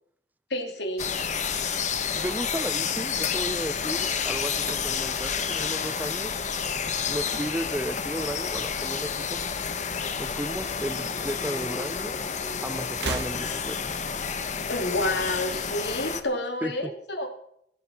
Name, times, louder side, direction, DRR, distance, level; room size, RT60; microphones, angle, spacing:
voice 1, 0.5-1.1 14.7-17.3, left 1 dB, 75° left, 4 dB, 2.6 m, -29 dB
sound 1, 1.0-16.2, left 6 dB, 45° left, 1.2 m, -30 dB
voice 2, 2.2-6.4 7.1-9.4 10.2-12.2 12.6-14.0 16.6-16.9, right 1 dB, 10° right, 14 dB, 0.5 m, -34 dB
sound 2, 7.3-7.8 8.9-9.9 10.1-10.3 11.4-11.5 12.9-13.9, right 3 dB, 75° right, 1.8 m, -39 dB
sound 3, 10.5-15.6, left 1 dB, 15° left, 1.0 m, -45 dB
16.0 x 15.5 x 4.4 m, 0.71 s
head